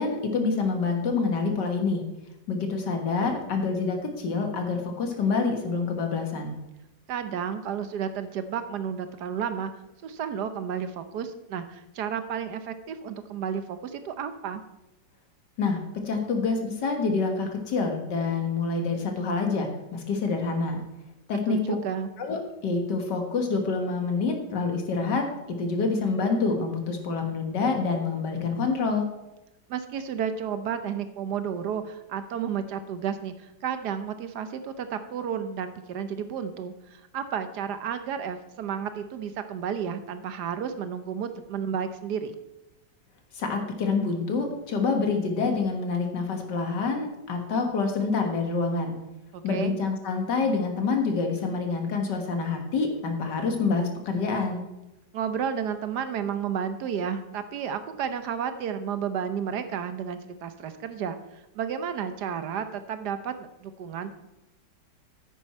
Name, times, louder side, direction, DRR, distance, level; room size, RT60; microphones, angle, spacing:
voice 1, 0.0-2.0 2.5-6.5 15.6-20.8 21.3-21.8 22.2-29.1 43.3-49.0 49.4-54.6, left 4 dB, 70° left, 4 dB, 2.1 m, -27 dB
voice 2, 7.1-9.7 10.0-14.6 21.5-22.1 29.7-42.4 49.3-49.8 55.1-61.2 61.5-63.3 63.6-64.2, right 8 dB, 70° right, 10 dB, 1.2 m, -32 dB
9.9 x 8.9 x 4.3 m, 0.97 s
omnidirectional pair, 1.9 m